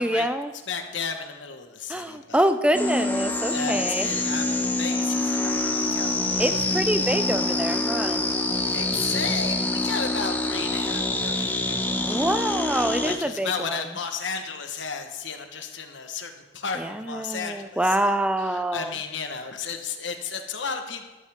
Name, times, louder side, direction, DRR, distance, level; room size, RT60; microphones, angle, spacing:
voice 1, 0.0-0.5 1.9-4.1 6.4-8.2 12.1-13.8 16.8-18.9, right 1 dB, 5° right, 10 dB, 0.4 m, -25 dB
voice 2, 0.7-2.4 3.5-6.4 8.7-12.4 13.0-21.1, left 5 dB, 80° left, 6 dB, 1.3 m, -34 dB
sound 1, 2.7-13.2, left 2 dB, 10° left, 0.8 m, -26 dB
13.0 x 12.5 x 3.6 m, 1.1 s
head